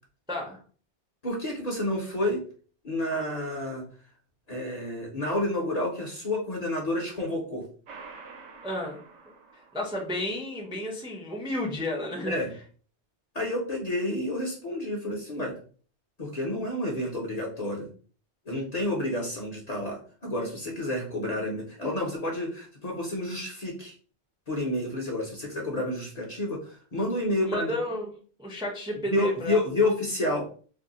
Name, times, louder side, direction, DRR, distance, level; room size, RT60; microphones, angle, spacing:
voice 1, 0.3-0.6 8.6-9.0 9.5-12.3 27.5-28.1 28.4-29.6, left 1 dB, 5° right, -1 dB, 0.4 m, -32 dB
voice 2, 1.2-2.4 2.8-3.8 4.5-7.6 12.3-12.5 13.3-15.6 16.2-17.9 18.5-23.9 24.5-27.7 29.1-30.5, left 1 dB, 45° left, -1 dB, 0.6 m, -29 dB
sound 1, 7.9-10.3, right 4 dB, 80° right, 1.0 m, -48 dB
2.6 x 2.1 x 3.8 m, 0.42 s
omnidirectional pair, 1.2 m